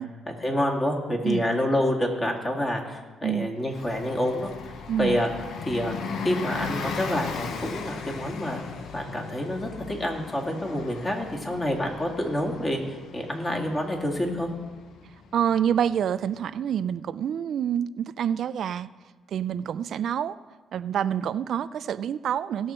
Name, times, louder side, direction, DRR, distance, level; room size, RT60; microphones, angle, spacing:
voice 1, 0.3-4.7 5.0-5.3 5.7-5.9 6.2-8.6 8.9-12.8 13.1-14.5, left 1 dB, 25° left, 0 dB, 2.1 m, -27 dB
Bus, 3.6-15.9, left 5 dB, 70° left, 0.8 m, -37 dB
voice 2, 4.9-5.2 15.3-18.9 19.3-20.4 20.7-22.7, right 9 dB, 65° right, 15 dB, 0.4 m, -27 dB
17.5 x 6.4 x 4.3 m, 1.4 s
cardioid pair, 90°, 0 cm